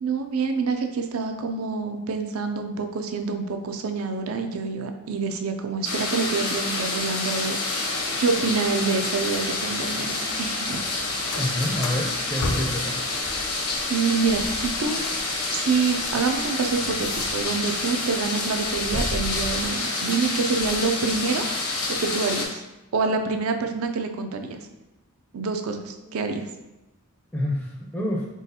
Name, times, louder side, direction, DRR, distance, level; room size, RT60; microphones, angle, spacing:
voice 1, 0.0-10.8 13.9-15.0 15.5-21.5 21.9-22.6 22.9-24.7 25.3-26.5, right 4 dB, 65° right, 6 dB, 0.4 m, -27 dB
sound 1, 5.8-22.5, left 3 dB, 90° left, 1.0 m, -28 dB
sound 2, 10.6-12.9 13.2-17.7 18.1-19.7, left 1 dB, 75° left, 0.5 m, -35 dB
voice 2, 11.3-13.0 27.3-28.3, left 1 dB, 5° left, -3 dB, 0.4 m, -27 dB
4.0 x 3.7 x 2.8 m, 0.99 s
head